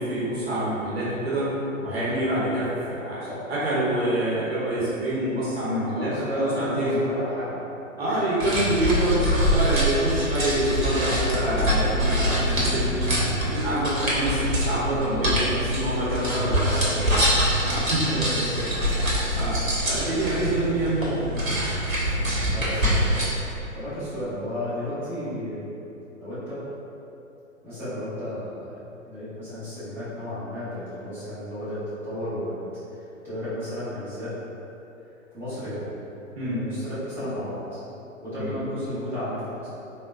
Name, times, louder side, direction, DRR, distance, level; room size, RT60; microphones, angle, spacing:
voice 1, 0.0-1.5 1.8-7.0 8.0-12.9 13.4-17.3 17.6-18.2 19.3-19.6 19.8-21.4 36.3-36.6 38.4-38.5, right 1 dB, 50° right, -9 dB, 0.8 m, -26 dB
voice 2, 5.8-7.6 8.1-8.4 16.6-17.1 18.1-19.1 22.4-23.1 23.7-25.6 26.2-26.6 27.6-32.6 33.2-34.3 35.3-35.9 36.4-37.8 38.2-39.7, equal, 5° right, -16 dB, 0.8 m, -33 dB
sound 1, 8.4-23.3, equal, 80° right, 0.9 m, -24 dB
3.5 x 2.2 x 2.3 m, 2.9 s
figure-of-eight pair, 120°, 40 cm